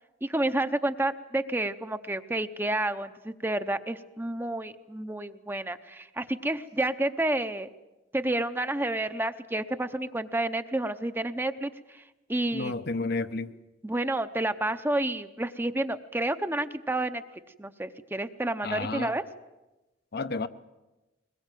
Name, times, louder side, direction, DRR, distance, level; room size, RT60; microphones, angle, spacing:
voice 1, 0.2-7.7 8.1-12.0 12.3-12.8 13.8-17.2 17.6-19.3, right 1 dB, 10° right, 0.8 m, -30 dB
voice 2, 12.5-13.5 18.6-19.1 20.1-20.5, left 3 dB, 55° left, 0.8 m, -31 dB
21.5 x 21.0 x 9.2 m
head